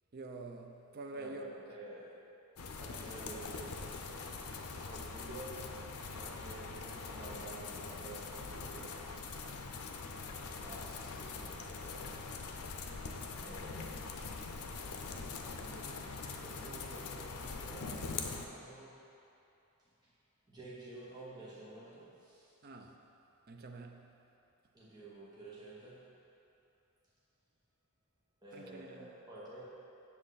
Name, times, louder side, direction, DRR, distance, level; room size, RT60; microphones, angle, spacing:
voice 1, 0.1-1.5 22.6-23.0 23.5-24.1 28.5-29.1, right 2 dB, 45° right, 3 dB, 0.5 m, -47 dB
voice 2, 1.1-2.1 2.8-4.3 4.8-5.7 6.1-9.0 10.2-12.3 13.4-14.0 14.9-18.9 20.0-20.1 20.5-22.5 24.7-26.0 28.4-29.6, right 1 dB, 20° right, -9 dB, 1.2 m, -50 dB
sound 1, 2.6-18.5, left 4 dB, 90° left, 0.6 m, -43 dB
7.6 x 7.0 x 4.1 m, 2.7 s
head